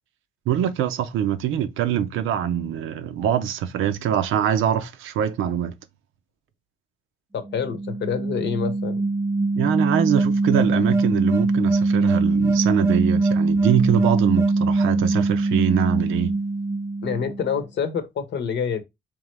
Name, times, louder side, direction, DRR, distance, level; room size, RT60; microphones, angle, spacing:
voice 1, 0.5-5.7 9.5-16.3, right 9 dB, 85° right, 0.6 m, -23 dB
voice 2, 7.3-9.0 17.0-18.8, left 7 dB, 60° left, 0.8 m, -27 dB
sound 1, 7.5-17.6, right 3 dB, 15° right, 0.4 m, -22 dB
3.7 x 3.1 x 3.1 m
cardioid pair, 90°, 20 cm